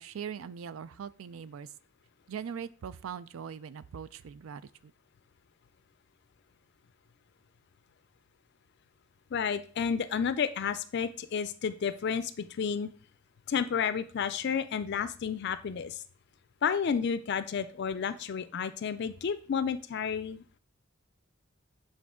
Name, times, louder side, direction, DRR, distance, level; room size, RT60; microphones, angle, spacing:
voice 1, 0.0-1.7 2.3-4.9, right 7 dB, 80° right, 16 dB, 0.4 m, -41 dB
voice 2, 9.3-12.9 13.5-16.0 16.6-20.6, left 6 dB, 55° left, 13 dB, 0.4 m, -31 dB
8.4 x 3.8 x 3.7 m, 0.41 s
head